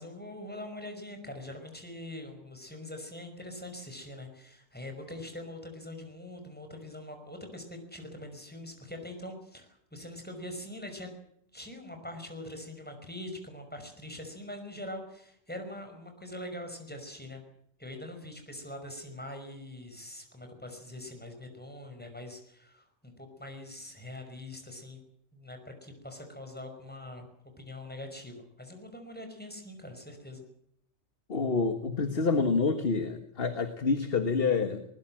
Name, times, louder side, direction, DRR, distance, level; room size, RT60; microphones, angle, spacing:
voice 1, 0.0-11.1 11.5-17.4 17.8-25.0 25.3-27.3 27.6-30.4, left 1 dB, 5° left, 5 dB, 5.4 m, -43 dB
voice 2, 31.3-34.8, left 4 dB, 50° left, 8 dB, 1.8 m, -27 dB
21.0 x 20.0 x 7.7 m, 0.71 s
omnidirectional pair, 1.3 m